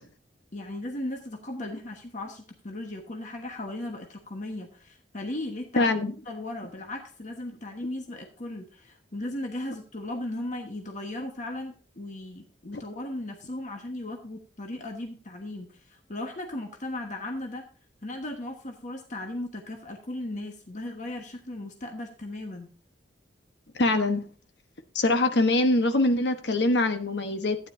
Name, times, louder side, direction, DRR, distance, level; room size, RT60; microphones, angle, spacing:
voice 1, 0.5-5.9 6.3-17.6 18.0-22.7, left 1 dB, 45° left, 3 dB, 1.2 m, -36 dB
voice 2, 5.8-6.1 12.7-12.8 23.8-24.2 24.9-27.6, left 2 dB, 65° left, 8 dB, 1.1 m, -23 dB
12.0 x 9.9 x 2.6 m, 0.37 s
head